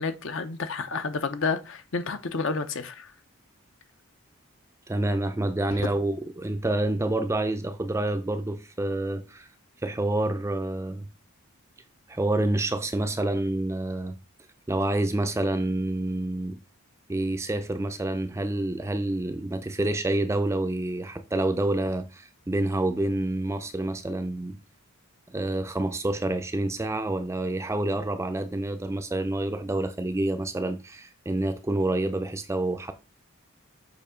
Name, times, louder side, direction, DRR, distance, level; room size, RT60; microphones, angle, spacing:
voice 1, 0.0-3.1, left 4 dB, 60° left, 0.7 m, -30 dB
voice 2, 4.9-9.5 9.8-11.1 12.1-14.2 14.7-16.6 17.1-24.6 25.3-32.9, right 2 dB, 15° right, 0.4 m, -28 dB
6.8 x 2.7 x 5.0 m
head